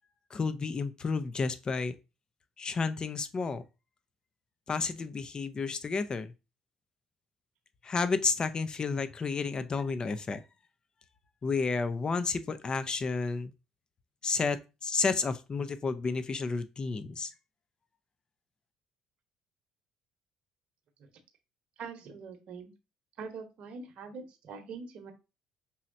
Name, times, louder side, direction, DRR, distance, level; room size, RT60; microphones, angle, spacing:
voice 1, 0.3-2.0 2.6-3.6 4.7-6.3 7.8-10.4 11.4-13.5 14.2-17.3, left 4 dB, 35° left, 12 dB, 0.6 m, -31 dB
voice 2, 21.8-22.7 23.2-25.1, right 5 dB, 60° right, 5 dB, 1.0 m, -43 dB
5.5 x 3.1 x 2.6 m, 0.28 s
hypercardioid pair, 55°, 2 cm